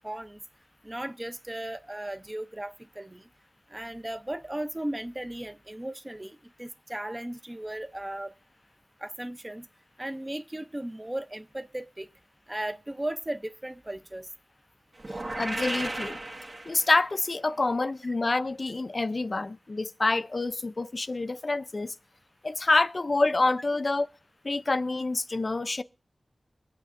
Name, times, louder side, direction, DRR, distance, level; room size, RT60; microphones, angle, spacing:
voice 1, 0.0-0.4 0.8-3.2 3.7-8.3 9.0-9.7 10.0-12.1 12.5-14.3, right 1 dB, 20° right, 0.6 m, -36 dB
sound 1, 15.0-17.2, right 2 dB, 55° right, 1.5 m, -35 dB
voice 2, 15.4-16.2 16.7-21.9 22.4-24.1 24.4-25.8, left 3 dB, 45° left, 0.4 m, -27 dB
23.5 x 8.3 x 2.5 m
wide cardioid pair, 80°, 0 cm